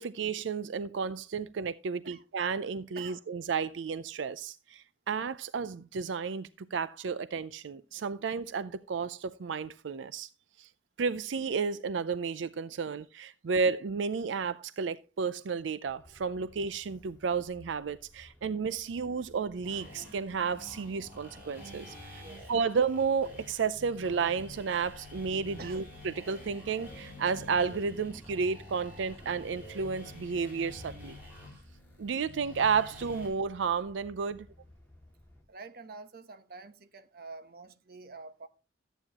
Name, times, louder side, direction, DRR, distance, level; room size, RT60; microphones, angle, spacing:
voice 1, 0.0-10.3 10.6-10.7 11.0-22.2 22.5-31.2 32.0-34.5, right 5 dB, 80° right, 0.4 m, -32 dB
voice 2, 2.9-3.3 22.2-22.5 25.6-25.8 35.5-38.5, right 3 dB, 55° right, 1.0 m, -47 dB
sound 1, 15.9-35.4, left 1 dB, 10° left, 2.2 m, -56 dB
sound 2, 19.6-33.3, left 2 dB, 10° right, 6.5 m, -49 dB
13.5 x 9.0 x 2.9 m
head